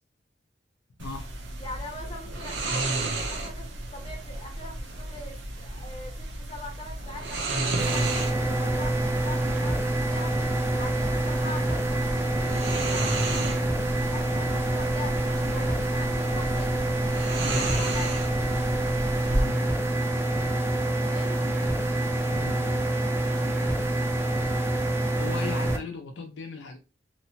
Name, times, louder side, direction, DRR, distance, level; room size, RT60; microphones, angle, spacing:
voice 1, 1.0-1.3 19.4-19.7 22.3-22.8 25.2-26.8, left 4 dB, 75° left, 0.4 m, -37 dB
sound 1, 1.0-19.4, right 2 dB, 85° right, 0.6 m, -33 dB
voice 2, 1.6-10.4 10.7-13.6 14.1-16.7 17.4-18.3 21.0-21.4, left 1 dB, 30° left, 0.8 m, -42 dB
sound 2, 7.8-25.8, right 1 dB, 15° right, 0.4 m, -26 dB
2.9 x 2.1 x 2.7 m
head